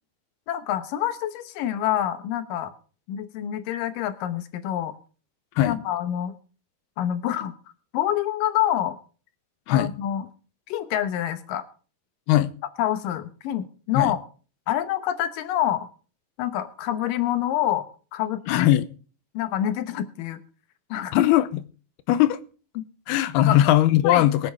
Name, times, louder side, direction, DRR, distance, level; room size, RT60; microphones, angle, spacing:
voice 1, 0.5-2.7 3.1-4.9 5.6-6.3 7.0-7.5 7.9-9.0 9.7-10.3 10.7-11.6 12.8-14.2 14.7-15.9 16.4-17.9 18.1-18.7 19.3-20.4 20.9-21.2 22.8-22.9 23.4-23.6 24.0-24.3, left 11 dB, 70° left, 2.5 m, -26 dB
voice 2, 18.5-18.9 21.1-21.5 22.1-22.4 23.1-24.5, left 13 dB, 85° left, 2.8 m, -19 dB
23.0 x 8.7 x 3.5 m
omnidirectional pair, 4.5 m